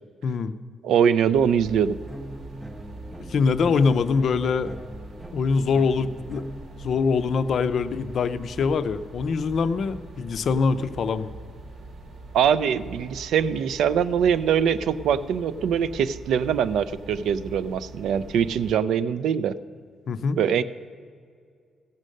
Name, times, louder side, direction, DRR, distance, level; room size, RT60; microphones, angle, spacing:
voice 1, 0.2-0.5 3.3-4.7 5.3-6.5 6.8-11.3 20.1-20.4, left 5 dB, 50° left, 11 dB, 0.4 m, -23 dB
voice 2, 0.8-2.0 12.3-19.6 20.4-20.6, right 8 dB, 80° right, 14 dB, 0.3 m, -23 dB
sound 1, 1.3-18.7, right 2 dB, 55° right, 1.0 m, -43 dB
sound 2, 1.8-7.7, right 1 dB, 10° right, 0.5 m, -42 dB
16.0 x 6.4 x 6.4 m, 2.1 s
cardioid pair, 160°, 0 cm